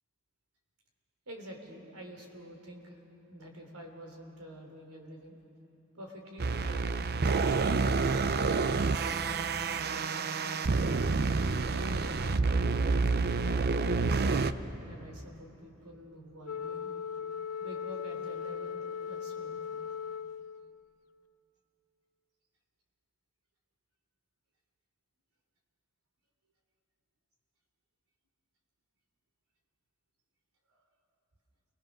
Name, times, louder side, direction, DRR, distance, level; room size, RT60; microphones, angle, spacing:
voice 1, 1.3-3.0 3.3-5.4 5.9-7.8 8.4-9.5 9.7-10.6 11.7-12.9 13.9-16.9 17.6-19.8 30.7-30.8, equal, 80° right, 2 dB, 3.7 m, -48 dB
sound 1, 6.4-14.5, right 4 dB, 45° right, 0.6 m, -28 dB
Wind instrument woodwind instrument, 16.4-20.8, left 7 dB, 80° left, 0.5 m, -38 dB
28.5 x 20.5 x 6.6 m, 2.9 s
head